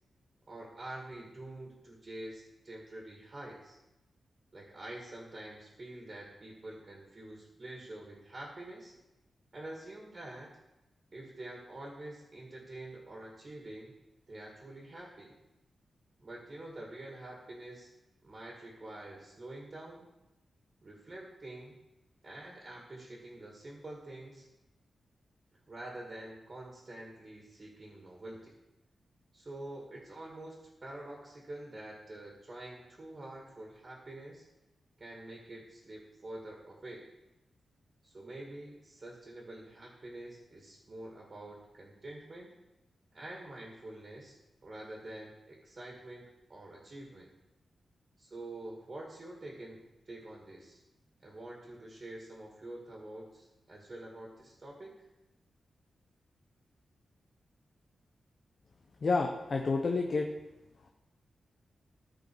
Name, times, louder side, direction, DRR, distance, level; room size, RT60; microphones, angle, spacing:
voice 1, 0.5-3.8 4.5-8.9 9.5-10.5 11.1-13.9 14.3-15.4 16.2-17.9 18.2-20.1 20.8-21.8 22.2-24.5 25.7-28.6 29.3-34.5 35.0-37.1 38.0-42.5 43.1-44.4 44.6-47.3 48.2-50.8 51.2-55.1, right 1 dB, 35° right, -2 dB, 2.0 m, -46 dB
voice 2, 59.0-60.3, left 3 dB, 50° left, 2 dB, 0.9 m, -29 dB
14.0 x 5.1 x 4.7 m, 0.97 s
wide cardioid pair, 95°, 0 cm